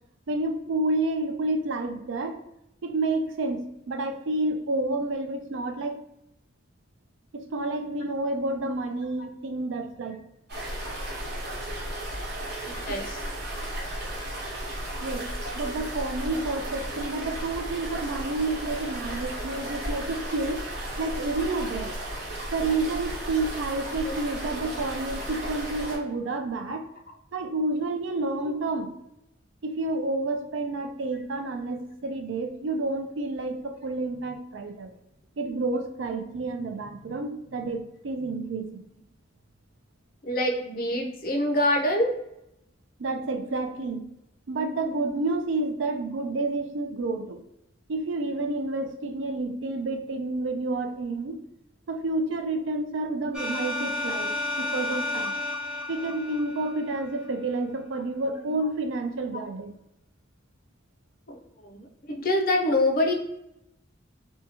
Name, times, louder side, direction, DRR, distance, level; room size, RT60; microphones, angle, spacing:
voice 1, 0.3-2.4 2.8-6.0 7.3-10.2 12.9-13.0 15.0-15.2 15.5-20.6 21.0-21.9 22.5-26.8 27.3-28.9 29.6-34.9 35.4-38.8 43.0-44.0 44.5-47.4 47.9-51.4 51.9-54.3 54.6-55.3 55.9-59.7, right 2 dB, 75° right, 5 dB, 0.4 m, -29 dB
sound 1, 10.5-26.0, right 1 dB, 60° right, 0.8 m, -34 dB
voice 2, 12.8-13.2 19.8-20.0 24.0-24.2 40.2-42.1 58.5-58.6 59.3-59.4 61.3-61.4 61.6-63.1, left 1 dB, 50° left, 2 dB, 0.5 m, -26 dB
sound 2, 53.3-57.2, left 2 dB, 5° right, 0.3 m, -32 dB
2.7 x 2.3 x 2.8 m, 0.82 s
head